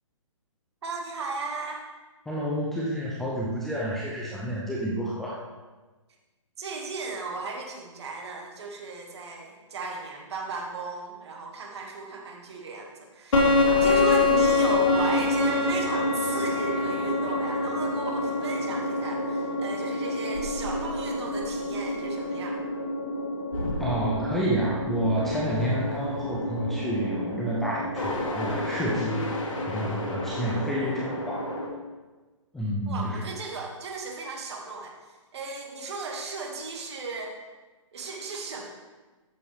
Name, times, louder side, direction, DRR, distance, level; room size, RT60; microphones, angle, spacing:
voice 1, 0.8-1.8 6.6-22.6 32.9-34.9 35.3-37.4 37.9-38.7, right 3 dB, 50° right, 1 dB, 2.0 m, -35 dB
voice 2, 2.3-5.5 23.8-29.3 29.7-31.6 32.5-33.2, equal, ahead, -5 dB, 0.3 m, -29 dB
sound 1, 13.3-31.7, left 2 dB, 75° left, 2.7 m, -27 dB
14.0 x 6.9 x 3.4 m, 1.2 s
hypercardioid pair, 160°, 17 cm